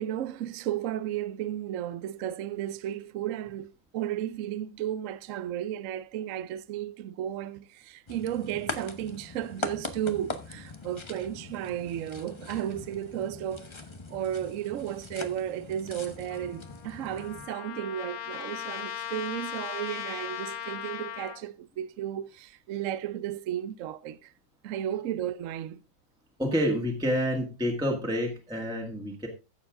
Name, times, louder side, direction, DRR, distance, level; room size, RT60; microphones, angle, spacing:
voice 1, 0.0-13.7 14.1-24.3 24.6-25.8, right 11 dB, 70° right, 0.7 m, -34 dB
sound 1, 8.1-17.5, left 3 dB, 40° left, 0.4 m, -41 dB
Trumpet, 16.3-21.4, left 11 dB, 85° left, 1.7 m, -38 dB
voice 2, 26.4-29.3, equal, ahead, 1.7 m, -28 dB
14.0 x 7.1 x 3.7 m
omnidirectional pair, 2.2 m